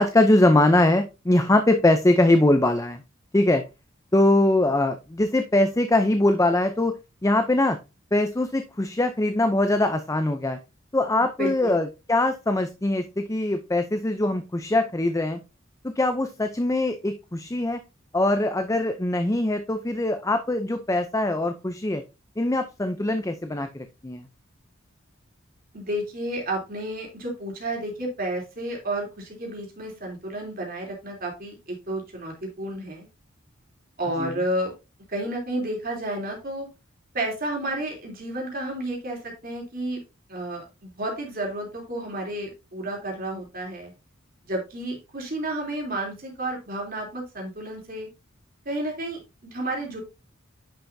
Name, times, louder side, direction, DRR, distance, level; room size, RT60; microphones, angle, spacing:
voice 1, 0.0-3.0 3.3-3.6 4.1-7.0 7.2-7.8 8.1-10.6 10.9-15.4 15.8-17.8 18.1-22.0 22.4-24.2 34.2-34.3, left 1 dB, 15° left, 8 dB, 0.6 m, -22 dB
voice 2, 11.4-11.7 25.7-33.1 34.0-34.7 35.1-36.7 37.1-40.0 40.3-43.9 44.4-48.1 48.6-50.0, right 1 dB, 45° right, 0 dB, 3.3 m, -31 dB
10.0 x 5.5 x 2.7 m, 0.27 s
head